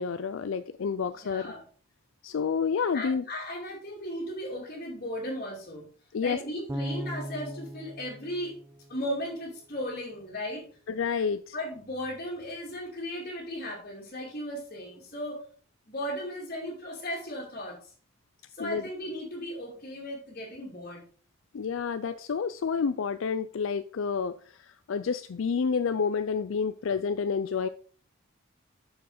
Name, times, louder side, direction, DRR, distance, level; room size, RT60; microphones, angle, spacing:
voice 1, 0.0-1.4 2.2-3.2 6.1-6.4 11.0-11.5 18.6-18.8 21.5-24.4 24.9-27.7, left 6 dB, 65° left, 12 dB, 0.4 m, -29 dB
voice 2, 1.2-1.6 2.9-5.8 6.2-8.6 8.9-10.7 11.5-15.4 15.9-17.9 18.5-21.0, equal, 40° left, -6 dB, 2.7 m, -36 dB
Bass guitar, 6.7-9.7, right 1 dB, 15° right, 0.8 m, -39 dB
7.0 x 6.4 x 5.0 m, 0.43 s
head